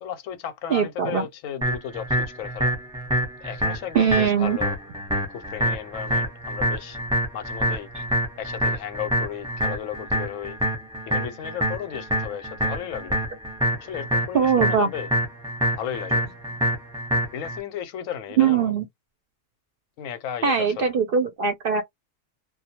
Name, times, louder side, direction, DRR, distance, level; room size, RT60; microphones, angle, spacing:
voice 1, 0.0-2.8 3.4-4.8 5.3-7.0 7.3-7.9 8.4-10.6 11.1-13.2 13.8-15.1 15.8-16.3 17.3-18.7 20.0-20.9, left 9 dB, 90° left, 1.0 m, -34 dB
voice 2, 0.7-1.3 3.9-4.6 14.3-14.9 18.4-18.8 20.4-21.8, right 7 dB, 60° right, 0.6 m, -21 dB
sound 1, 1.6-17.6, equal, 5° right, 0.7 m, -26 dB
2.2 x 2.2 x 2.8 m
omnidirectional pair, 1.3 m